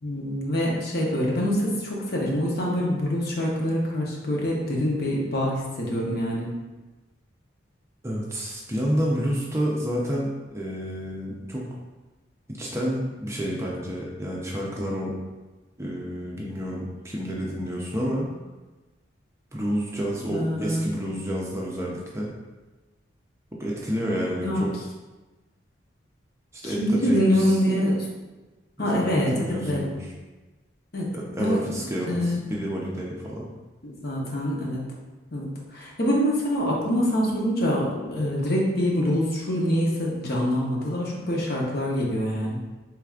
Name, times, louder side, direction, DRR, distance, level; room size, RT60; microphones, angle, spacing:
voice 1, 0.0-6.5 20.3-20.8 24.4-24.6 26.6-28.1 28.8-29.8 30.9-31.1 31.4-32.4 33.8-34.8 35.3-42.6, equal, 55° left, -3 dB, 0.8 m, -25 dB
voice 2, 8.0-11.7 12.5-15.2 15.8-18.3 19.5-22.3 23.6-24.7 26.5-27.6 28.8-30.1 31.1-33.5, equal, 15° right, -4 dB, 0.5 m, -29 dB
4.7 x 3.3 x 2.4 m, 1.2 s
head